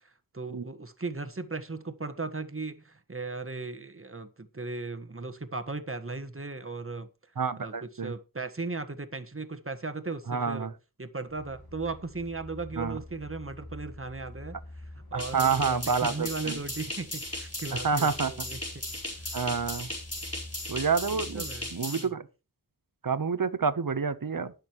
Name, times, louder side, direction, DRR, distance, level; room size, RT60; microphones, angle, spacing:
voice 1, 0.0-7.1 7.6-10.7 11.0-18.6 19.2-19.4 21.0-22.1, right 3 dB, 35° right, 1.5 m, -37 dB
voice 2, 7.4-8.1 10.3-10.7 12.8-13.0 15.1-16.6 17.8-18.3 19.3-19.9 20.7-21.4 21.7-22.2 23.0-24.5, right 5 dB, 65° right, 1.0 m, -28 dB
sound 1, 11.3-21.8, left 1 dB, 85° left, 3.0 m, -46 dB
sound 2, 15.2-22.0, left 1 dB, 40° left, 4.5 m, -37 dB
19.5 x 6.6 x 3.1 m
wide cardioid pair, 50°, 36 cm